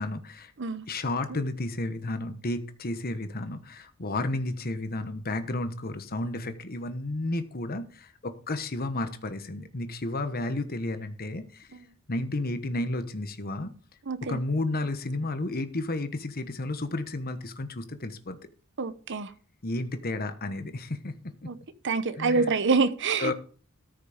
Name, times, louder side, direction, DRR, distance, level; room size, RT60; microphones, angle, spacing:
voice 1, 0.0-0.5 0.9-11.7 12.1-13.7 14.3-18.4 19.6-21.1 22.2-22.5 23.2-23.3, left 2 dB, 45° left, 1.2 m, -32 dB
voice 2, 14.1-14.4 18.8-19.3 21.5-21.6 21.8-23.3, right 4 dB, 60° right, 0.9 m, -26 dB
14.0 x 6.3 x 5.1 m
head